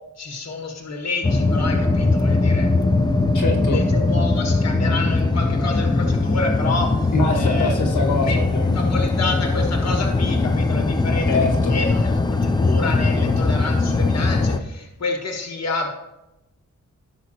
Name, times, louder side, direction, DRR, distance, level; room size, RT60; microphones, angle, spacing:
voice 1, 0.2-2.7 3.7-7.7 8.2-8.4 8.7-11.3 11.7-15.9, left 3 dB, 55° left, 2 dB, 1.5 m, -28 dB
sound 1, 1.2-14.6, left 3 dB, 15° left, 0.4 m, -20 dB
voice 2, 3.3-3.8 7.1-8.8 11.3-11.7, left 2 dB, 75° left, 1 dB, 1.6 m, -23 dB
16.0 x 6.1 x 2.8 m, 0.95 s
wide cardioid pair, 170°, 31 cm